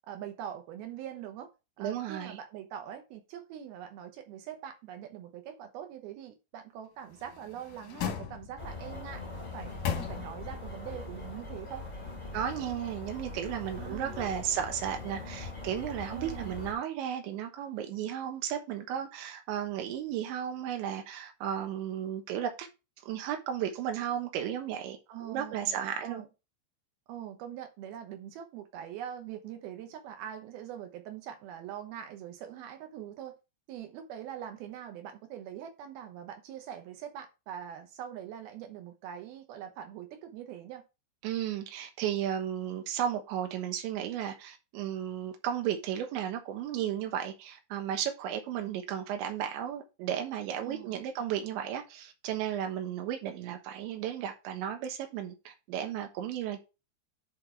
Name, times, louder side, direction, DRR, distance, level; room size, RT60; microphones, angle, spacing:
voice 1, 0.1-1.5 1.8-9.2 9.5-11.9 13.8-14.2 16.1-16.5 25.1-26.3 27.1-33.4 33.7-40.8 50.6-51.0, right 10 dB, 75° right, 2.6 m, -43 dB
voice 2, 1.8-2.4 12.3-22.7 23.0-26.2 41.2-56.7, right 10 dB, 90° right, 3.5 m, -34 dB
sound 1, 7.1-8.8 9.4-10.7 11.0-11.1, left 8 dB, 70° left, 2.0 m, -37 dB
sound 2, 8.6-16.7, left 3 dB, 35° left, 0.6 m, -42 dB
10.5 x 3.9 x 4.6 m
omnidirectional pair, 5.1 m